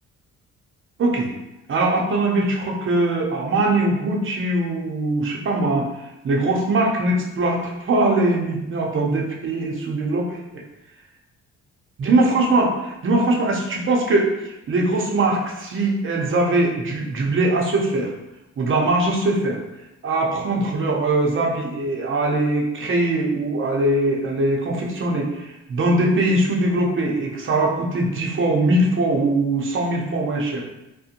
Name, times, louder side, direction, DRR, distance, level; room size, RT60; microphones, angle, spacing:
voice 1, 1.7-5.9 6.2-10.6 12.0-18.1 18.6-19.6 20.0-30.6, right 2 dB, 40° right, -1 dB, 0.6 m, -21 dB
2.8 x 2.1 x 2.5 m, 0.93 s
cardioid pair, 90°, 30 cm